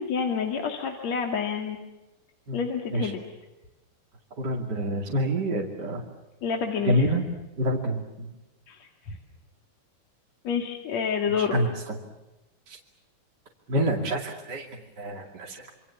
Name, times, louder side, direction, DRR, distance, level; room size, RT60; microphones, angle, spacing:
voice 1, 0.0-1.8 2.5-3.2 6.4-7.1 8.7-9.2 10.4-11.6, left 6 dB, 60° left, 3 dB, 3.2 m, -28 dB
voice 2, 4.4-6.0 6.8-7.2 7.6-8.3 11.5-12.0 12.7-12.8 13.7-14.7 15.0-15.7, equal, 35° right, 0 dB, 2.9 m, -27 dB
27.5 x 25.5 x 7.1 m, 1.0 s
omnidirectional pair, 3.6 m